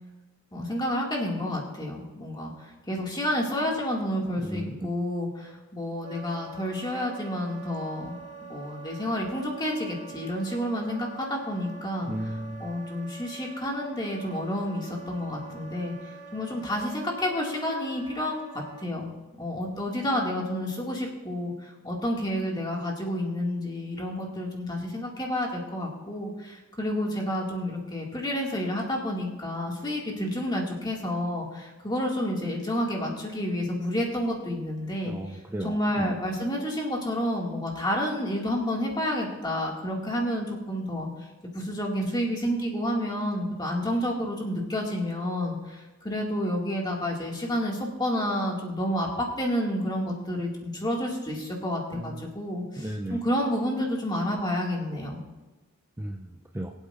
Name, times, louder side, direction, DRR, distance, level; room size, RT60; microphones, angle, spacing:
voice 1, 0.5-8.2 8.5-12.1 12.6-19.1 19.4-41.1 41.5-55.2, equal, 20° left, -1 dB, 2.1 m, -30 dB
voice 2, 4.4-4.9 12.0-12.7 35.0-36.2 51.9-52.3 52.8-53.2 56.0-56.7, right 1 dB, 10° right, 1 dB, 0.4 m, -35 dB
Wind instrument woodwind instrument, 6.0-18.9, right 4 dB, 30° right, 2.5 m, -45 dB
23.0 x 8.2 x 2.5 m, 1.2 s
head